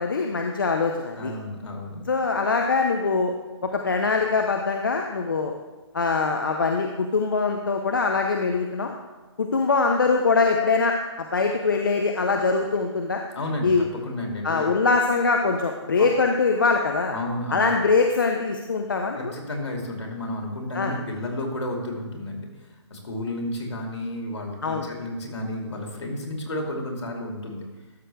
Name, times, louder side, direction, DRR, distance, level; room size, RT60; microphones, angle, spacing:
voice 1, 0.0-1.3 2.1-3.3 3.6-5.5 5.9-8.9 9.4-13.2 13.6-13.9 14.4-17.1 17.5-19.3 20.7-20.9 24.6-24.9, left 4 dB, 45° left, 3 dB, 0.6 m, -23 dB
voice 2, 1.2-2.0 13.3-14.9 16.0-16.1 17.1-17.7 19.2-22.5 22.9-27.6, left 1 dB, 70° left, 1 dB, 2.4 m, -32 dB
12.5 x 6.3 x 3.4 m, 1.2 s
hypercardioid pair, 175°, 15 cm